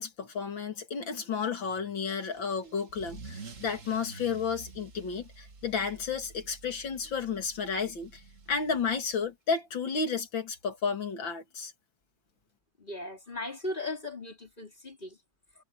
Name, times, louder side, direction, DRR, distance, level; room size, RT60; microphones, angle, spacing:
voice 1, 0.0-8.2 8.5-11.7, left 5 dB, 80° left, 3.1 m, -32 dB
Car / Engine starting / Accelerating revving vroom, 2.1-9.2, right 4 dB, 40° right, 2.1 m, -49 dB
voice 2, 12.8-15.2, left 2 dB, 25° left, 4.4 m, -37 dB
omnidirectional pair, 2.1 m